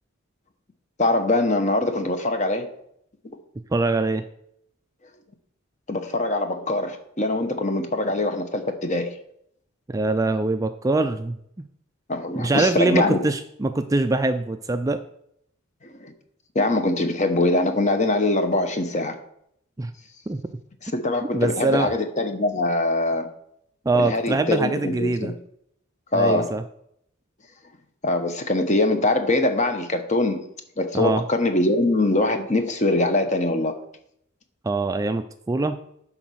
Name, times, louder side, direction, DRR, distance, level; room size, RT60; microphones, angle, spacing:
voice 1, 1.0-2.7 5.9-9.1 12.1-13.2 15.8-16.1 16.5-19.2 20.8-23.3 23.9-25.3 26.1-26.5 28.0-30.4 30.8-33.7, left 2 dB, 35° left, 1.0 m, -23 dB
voice 2, 3.7-4.2 9.9-11.4 12.4-15.0 19.8-19.9 20.3-20.4 21.3-21.9 23.9-25.3 26.1-26.6 30.9-31.2 34.6-35.8, right 2 dB, 15° right, 0.3 m, -23 dB
9.9 x 4.0 x 6.3 m
head